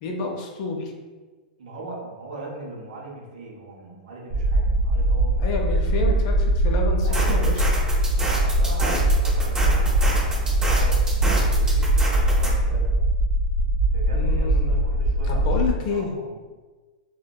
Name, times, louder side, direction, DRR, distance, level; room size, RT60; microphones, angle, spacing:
voice 1, 0.0-0.9 5.4-7.6 14.1-14.7 15.3-16.1, left 4 dB, 50° left, 1 dB, 0.5 m, -29 dB
voice 2, 1.6-5.4 7.0-7.6 8.2-13.0 13.8-16.4, right 2 dB, 70° right, -2 dB, 0.7 m, -39 dB
sound 1, 4.3-15.7, right 1 dB, 50° right, 1.0 m, -21 dB
sound 2, 7.0-12.5, right 1 dB, 15° right, 0.6 m, -29 dB
2.6 x 2.1 x 2.2 m, 1.3 s
hypercardioid pair, 125°, 5 cm